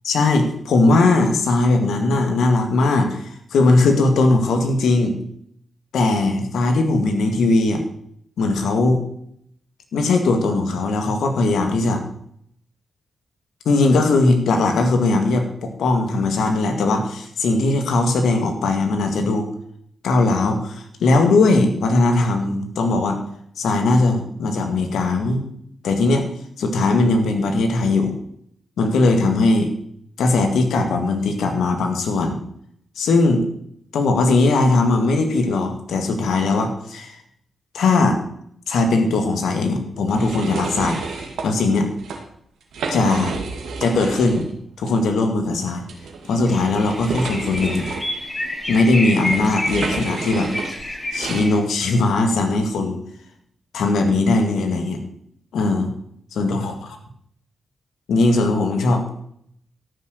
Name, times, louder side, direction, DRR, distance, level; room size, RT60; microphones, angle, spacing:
voice 1, 0.1-5.1 5.9-7.8 8.4-9.0 9.9-12.0 13.7-19.5 20.0-23.2 23.6-25.5 25.8-26.3 26.6-28.2 28.8-29.7 30.2-32.4 33.0-33.4 33.9-37.2 37.7-38.2 38.7-41.9 42.9-43.3 43.8-44.5 44.8-45.8 46.3-47.9 48.7-50.5 51.1-53.0 53.7-55.0 55.5-55.9 56.4-56.7 58.1-59.1, left 3 dB, 85° left, 5 dB, 2.0 m, -19 dB
sound 1, 40.1-41.5 41.9-42.2 42.6-44.5 44.8-44.9 45.9-51.5, right 4 dB, 85° right, 2.1 m, -30 dB
sound 2, 46.5-51.6, left 1 dB, 25° left, 3.2 m, -29 dB
13.5 x 6.6 x 6.5 m, 0.69 s
cardioid pair, 50°, 0 cm